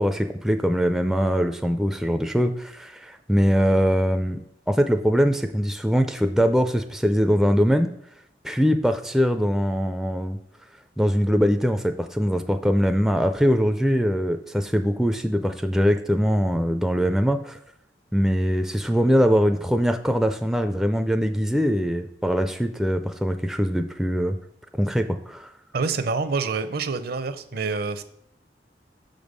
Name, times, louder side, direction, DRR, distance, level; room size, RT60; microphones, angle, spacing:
voice 1, 0.0-4.4 4.7-7.9 8.4-10.4 11.0-17.6 18.1-24.4 24.8-25.5, equal, ahead, 6 dB, 0.3 m, -22 dB
voice 2, 25.7-28.0, right 4 dB, 60° right, 11 dB, 0.6 m, -27 dB
6.6 x 5.2 x 5.3 m, 0.72 s
head